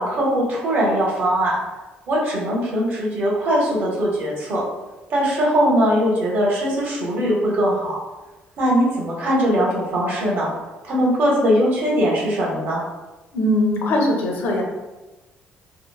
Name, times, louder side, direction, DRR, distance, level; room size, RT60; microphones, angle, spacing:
voice 1, 0.0-1.6 2.1-4.6 5.1-7.9 8.6-10.5 10.8-12.8, equal, 60° right, -3 dB, 0.8 m, -20 dB
voice 2, 13.3-14.6, left 1 dB, 75° left, 0 dB, 0.6 m, -20 dB
2.9 x 2.0 x 2.2 m, 1.1 s
cardioid pair, 125°, 4 cm